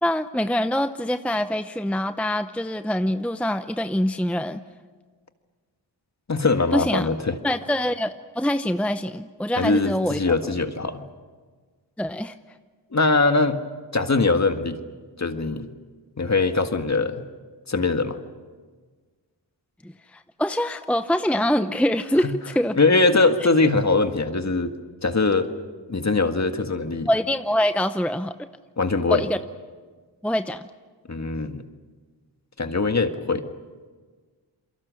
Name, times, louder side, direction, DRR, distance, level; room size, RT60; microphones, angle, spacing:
voice 1, 0.0-4.6 6.7-7.1 7.4-10.3 12.0-12.3 19.8-22.8 23.1-23.2 27.1-28.4 29.1-29.4 30.2-30.7, left 1 dB, 5° left, 10 dB, 0.7 m, -24 dB
voice 2, 6.3-7.4 9.6-11.0 12.9-13.6 13.9-14.8 15.2-15.7 16.2-17.2 17.7-18.2 22.2-22.3 22.7-24.7 25.0-25.5 25.9-27.1 28.8-29.2 31.1-31.6 32.6-33.4, left 3 dB, 35° left, 7 dB, 1.8 m, -22 dB
28.5 x 23.0 x 6.4 m, 1.5 s
cardioid pair, 55°, 44 cm